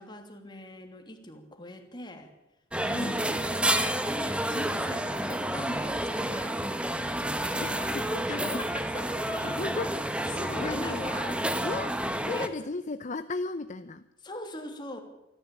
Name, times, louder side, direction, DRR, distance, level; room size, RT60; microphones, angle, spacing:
voice 1, 0.0-2.3 2.8-6.7 7.5-8.0 8.3-9.5 10.3-11.4 12.3-12.7 14.2-15.0, left 1 dB, 25° left, 4 dB, 3.0 m, -41 dB
sound 1, 2.7-12.5, right 1 dB, 5° right, 1.2 m, -30 dB
voice 2, 7.6-8.6 9.4-11.1 11.6-11.9 12.2-14.1, left 3 dB, 40° left, 11 dB, 0.7 m, -36 dB
25.5 x 14.0 x 8.6 m, 0.95 s
head